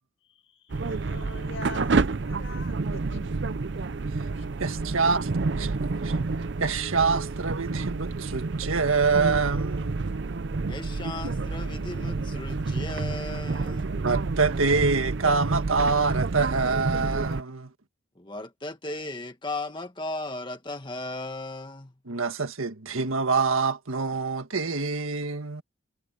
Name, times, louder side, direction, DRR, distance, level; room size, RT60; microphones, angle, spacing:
voice 1, 0.3-3.7 4.3-4.6, left 3 dB, 70° left, 5.8 m, -44 dB
sound 1, 0.7-17.4, right 3 dB, 60° right, 0.6 m, -29 dB
voice 2, 4.6-5.3 5.5-6.1 6.6-10.1 14.0-17.7 22.1-25.6, right 4 dB, 85° right, 1.7 m, -26 dB
voice 3, 10.7-13.9 18.2-21.9, left 2 dB, 25° left, 1.8 m, -36 dB
head